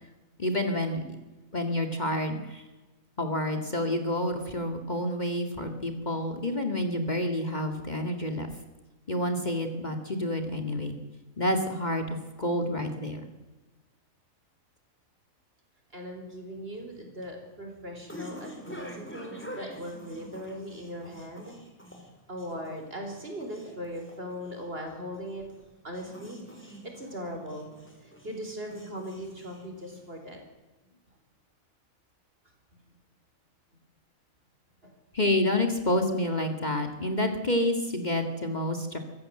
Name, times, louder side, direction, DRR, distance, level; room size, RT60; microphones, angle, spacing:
voice 1, 0.4-1.0 1.5-2.6 3.2-8.5 9.1-10.9 11.4-13.3 35.1-39.0, left 1 dB, 30° left, 5 dB, 2.2 m, -29 dB
voice 2, 15.9-21.5 22.3-25.5 25.8-27.7 28.0-30.4 32.7-32.8 34.8-34.9, equal, 45° right, 3 dB, 4.7 m, -39 dB
sound 1, 16.8-30.3, equal, 10° left, 4.2 m, -47 dB
24.5 x 14.5 x 7.7 m, 1.2 s
omnidirectional pair, 1.4 m